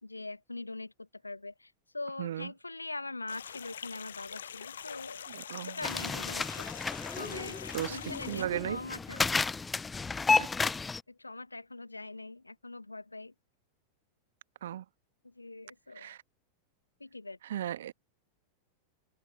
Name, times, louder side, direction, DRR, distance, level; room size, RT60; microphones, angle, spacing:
voice 1, 0.0-5.3 5.6-9.3 11.1-13.3 15.2-16.2 17.0-17.4, left 2 dB, 80° left, 1.6 m, -43 dB
voice 2, 2.2-2.5 5.3-5.8 7.7-8.0 8.3-8.8 10.3-10.5 14.6-14.8 15.9-16.2 17.4-17.9, right 11 dB, 60° right, 1.5 m, -35 dB
sound 1, 3.3-8.5, left 9 dB, 65° left, 0.6 m, -44 dB
sound 2, 5.8-11.0, left 4 dB, 15° left, 0.4 m, -32 dB
open air
figure-of-eight pair, 90°, 0 cm